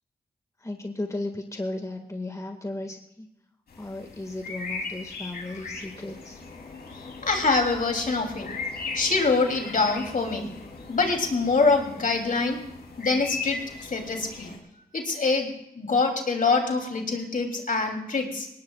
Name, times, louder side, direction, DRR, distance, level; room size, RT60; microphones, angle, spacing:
voice 1, 0.6-3.3 3.8-6.4, left 2 dB, 20° left, 4 dB, 1.7 m, -35 dB
sound 1, 3.7-14.6, left 4 dB, 75° left, 3.1 m, -38 dB
voice 2, 7.2-8.5 8.9-10.5 10.9-12.6 13.0-14.5 14.9-18.5, left 3 dB, 55° left, 3 dB, 2.9 m, -25 dB
20.0 x 18.0 x 2.3 m, 0.84 s
cardioid pair, 50°, 16 cm